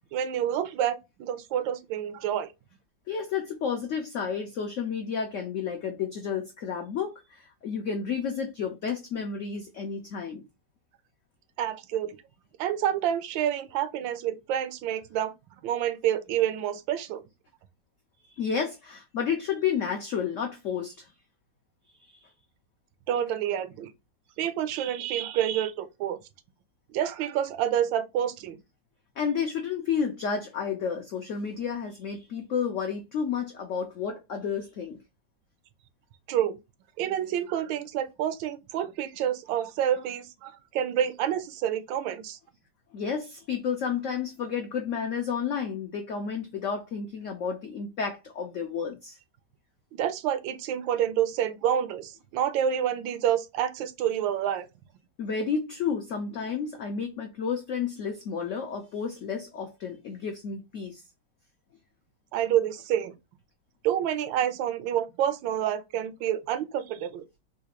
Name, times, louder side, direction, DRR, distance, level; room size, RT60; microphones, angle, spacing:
voice 1, 0.1-2.5 11.6-12.2 12.6-15.3 15.6-17.2 23.1-23.9 24.4-26.2 26.9-28.6 36.3-36.6 37.0-42.4 49.9-54.7 62.3-63.1 63.8-67.2, right 10 dB, 85° right, 1.3 m, -28 dB
voice 2, 3.1-10.4 18.4-21.1 22.0-22.1 29.2-35.0 42.9-49.2 55.2-61.0, left 6 dB, 85° left, 0.6 m, -31 dB
3.8 x 2.4 x 2.8 m
omnidirectional pair, 2.0 m